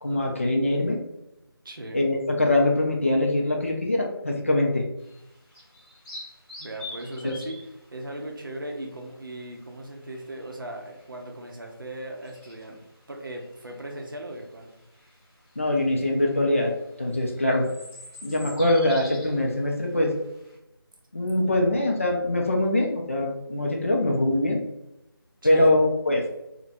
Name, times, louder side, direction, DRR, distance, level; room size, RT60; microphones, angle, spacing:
voice 1, 0.0-1.0 1.9-4.8 15.6-16.7 17.0-17.7 18.2-20.1 21.1-24.6 25.4-26.2, left 1 dB, 35° left, 0 dB, 0.4 m, -23 dB
voice 2, 1.6-2.1 6.6-7.6 7.9-12.8 13.1-14.7 25.4-25.7, right 1 dB, 60° right, 2 dB, 0.6 m, -38 dB
sound 1, 5.0-20.6, left 2 dB, 10° left, 1.4 m, -47 dB
3.1 x 2.1 x 2.8 m, 0.89 s
figure-of-eight pair, 165°, 13 cm